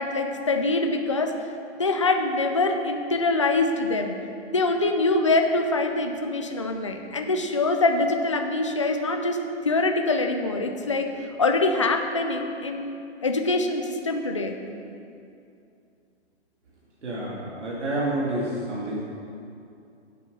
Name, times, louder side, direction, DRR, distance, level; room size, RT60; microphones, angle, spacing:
voice 1, 0.0-1.3 1.7-4.2 4.5-9.4 9.6-11.1 11.4-13.0 13.2-14.5, left 2 dB, 30° left, 5 dB, 0.4 m, -24 dB
voice 2, 17.0-19.0, right 1 dB, 80° right, -5 dB, 2.7 m, -29 dB
11.0 x 8.3 x 5.4 m, 2.6 s
hypercardioid pair, 175°, 35 cm